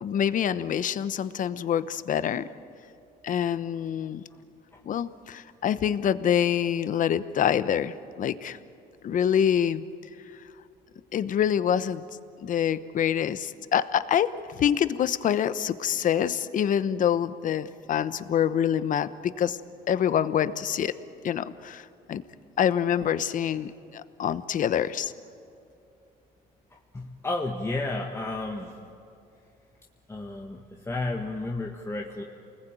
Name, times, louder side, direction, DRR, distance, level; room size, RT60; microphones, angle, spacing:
voice 1, 0.0-2.5 3.2-4.2 4.8-8.6 9.0-9.8 11.1-12.0 12.4-19.6 19.9-20.9 21.2-21.8 22.1-22.2 22.6-25.1, left 9 dB, 50° left, 14 dB, 1.0 m, -26 dB
voice 2, 26.9-28.8 30.1-32.2, left 2 dB, 15° left, 0 dB, 1.8 m, -32 dB
28.5 x 20.0 x 9.1 m, 2.6 s
cardioid pair, 110°, 17 cm